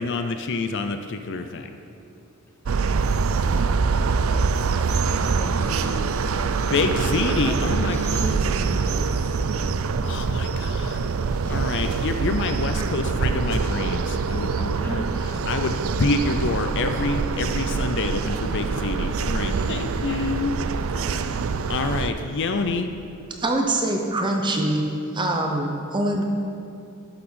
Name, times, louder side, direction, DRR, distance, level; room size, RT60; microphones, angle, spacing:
voice 1, 0.0-1.7 6.6-8.3 10.0-11.0 11.5-15.0 15.5-20.5 21.7-22.9, left 3 dB, 55° left, 7 dB, 0.5 m, -27 dB
sound 1, 2.7-22.1, right 4 dB, 70° right, 0.4 m, -24 dB
voice 2, 4.6-6.1 7.3-9.7 10.2-10.6 11.4-11.7 14.6-15.0 15.3-15.5 19.4-19.8 20.0-20.2 20.9-21.2, equal, 10° left, -2 dB, 1.4 m, -38 dB
voice 3, 23.4-24.9 25.1-26.2, right 1 dB, 20° right, 2 dB, 0.8 m, -23 dB
11.5 x 6.0 x 6.3 m, 2.7 s
head